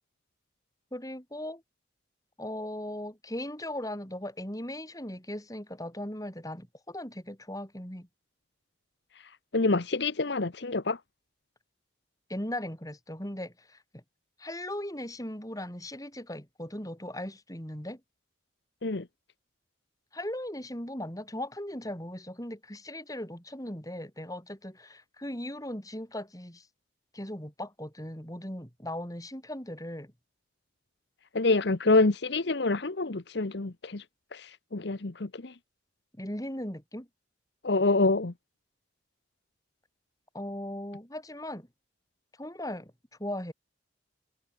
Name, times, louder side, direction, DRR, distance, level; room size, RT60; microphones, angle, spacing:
voice 1, 0.9-1.6 2.4-8.1 12.3-14.0 14.4-18.0 20.1-26.7 27.1-30.1 36.2-37.1 40.3-41.7 42.4-42.9 43.2-43.5, left 1 dB, 20° left, 5.4 m, -38 dB
voice 2, 9.5-11.0 18.8-19.0 31.3-34.0 34.3-35.5 37.6-38.3, left 3 dB, 60° left, 1.0 m, -26 dB
head